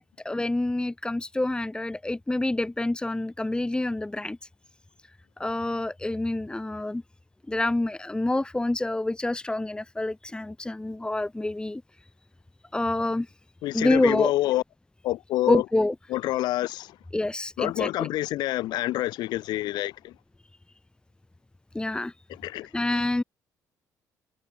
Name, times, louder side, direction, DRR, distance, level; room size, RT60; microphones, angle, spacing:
voice 1, 0.0-4.4 5.4-7.0 7.5-11.8 12.7-13.3 13.7-14.3 15.5-15.9 17.1-18.1 21.7-22.1 22.7-23.2, left 2 dB, 10° left, 2.3 m, -27 dB
voice 2, 13.6-14.6 15.0-15.6 16.1-16.9 17.6-20.1 22.4-22.7, left 16 dB, 80° left, 5.8 m, -27 dB
supercardioid pair, 80°, 7 cm